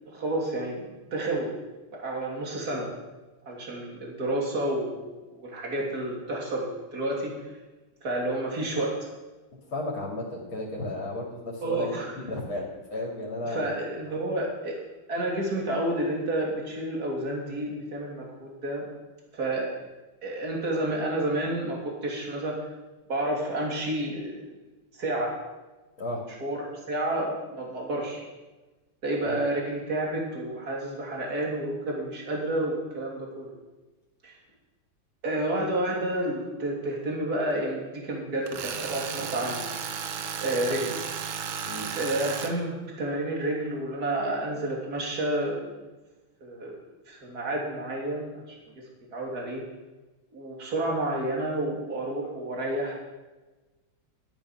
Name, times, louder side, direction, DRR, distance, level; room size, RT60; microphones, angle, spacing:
voice 1, 0.1-1.6 2.0-2.9 3.5-7.4 8.0-9.1 11.6-12.1 13.4-14.8 15.1-18.9 19.3-19.7 20.2-22.6 23.1-24.5 25.0-25.3 26.4-28.3 29.0-33.6 34.2-34.3 35.2-39.7 40.4-41.0 42.0-45.6 46.4-46.8 47.1-48.6 49.1-49.6 50.3-53.0, right 1 dB, 45° right, -2 dB, 3.4 m, -30 dB
voice 2, 9.7-13.7 26.0-26.2 29.3-29.4 41.6-41.9, left 2 dB, 70° left, -2 dB, 3.2 m, -33 dB
Tools, 38.5-42.5, right 7 dB, 70° right, 1.8 m, -34 dB
12.5 x 11.0 x 6.1 m, 1.2 s
omnidirectional pair, 2.3 m